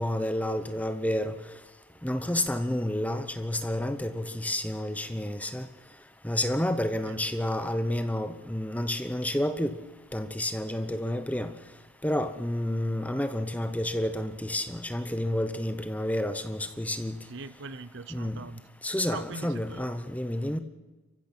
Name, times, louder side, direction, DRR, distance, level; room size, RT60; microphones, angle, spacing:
voice 1, 0.0-1.3 2.0-5.7 6.2-9.7 10.1-11.5 12.0-17.1 18.1-18.4 18.8-20.6, left 1 dB, 5° left, 9 dB, 0.9 m, -30 dB
voice 2, 17.3-18.6 19.1-19.8, right 4 dB, 55° right, 15 dB, 0.7 m, -41 dB
29.0 x 15.5 x 6.2 m, 1.2 s
head